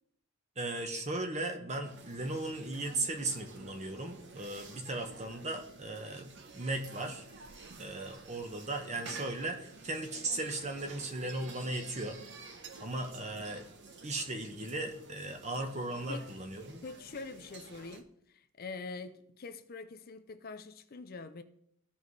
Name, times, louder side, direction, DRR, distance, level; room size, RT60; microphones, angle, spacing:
voice 1, 0.6-7.2 7.8-12.2 12.8-13.7 14.0-16.8, right 2 dB, 30° right, 1.0 m, -37 dB
sound 1, 1.8-18.0, right 4 dB, 55° right, 0.9 m, -51 dB
voice 2, 16.8-21.4, left 4 dB, 45° left, 0.5 m, -44 dB
15.5 x 5.4 x 3.2 m
head